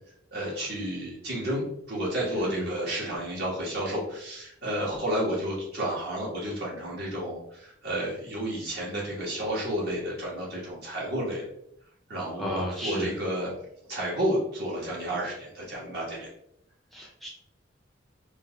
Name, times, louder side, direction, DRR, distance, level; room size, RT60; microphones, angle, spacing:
voice 1, 0.3-11.4 12.1-13.5 13.9-16.3, right 1 dB, 55° right, -5 dB, 1.3 m, -31 dB
voice 2, 2.3-2.7 12.4-13.1 16.9-17.3, equal, ahead, -3 dB, 0.4 m, -33 dB
4.4 x 2.3 x 2.2 m, 0.73 s
head